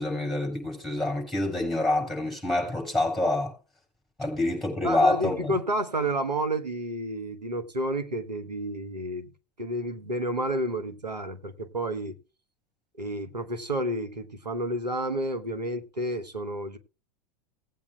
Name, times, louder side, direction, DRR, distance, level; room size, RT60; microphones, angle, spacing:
voice 1, 0.0-3.5 4.2-5.5, left 2 dB, ahead, 6.4 m, -27 dB
voice 2, 4.8-9.3 9.6-12.1 13.0-16.8, right 1 dB, 85° right, 1.2 m, -30 dB
19.0 x 8.4 x 2.3 m
figure-of-eight pair, 85°, 21 cm